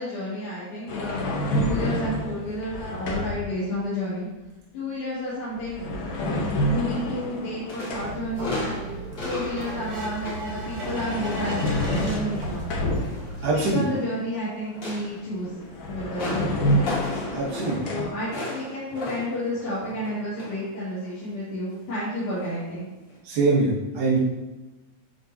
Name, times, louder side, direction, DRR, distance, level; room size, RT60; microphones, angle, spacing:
voice 1, 0.0-4.3 4.7-5.8 6.6-8.8 9.2-12.7 13.4-15.5 15.9-16.9 17.9-22.9, equal, 65° left, -14 dB, 3.6 m, -31 dB
sound 1, 0.9-3.6 5.5-8.4 10.5-13.4 15.3-15.4 15.7-18.1, left 1 dB, 85° left, 1.1 m, -28 dB
sound 2, 6.9-7.4 7.7-11.8 12.2-14.2 14.6-20.7 21.0-21.3 22.3-22.5 23.1-23.2, left 1 dB, 40° left, 2.4 m, -37 dB
sound 3, 7.9-13.7, right 2 dB, 45° right, 1.9 m, -36 dB
voice 2, 13.4-13.8 17.3-17.9 23.2-24.2, right 3 dB, 85° right, -7 dB, 3.2 m, -23 dB
11.0 x 3.8 x 2.8 m, 1.1 s
omnidirectional pair, 3.7 m